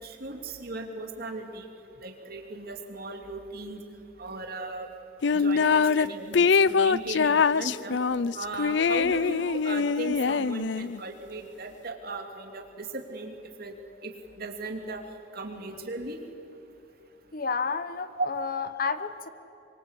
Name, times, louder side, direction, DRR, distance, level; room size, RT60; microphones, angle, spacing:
voice 1, 0.0-1.7 2.0-3.8 4.2-4.9 5.3-8.0 8.3-13.7 14.0-15.0 15.3-16.2 18.2-18.3, right 2 dB, 55° right, 4 dB, 2.9 m, -37 dB
sound 1, 5.2-6.1 6.3-11.0, left 5 dB, 70° left, 0.5 m, -23 dB
voice 2, 17.3-19.3, left 5 dB, 50° left, 12 dB, 1.1 m, -31 dB
25.0 x 24.0 x 8.3 m, 3.0 s
head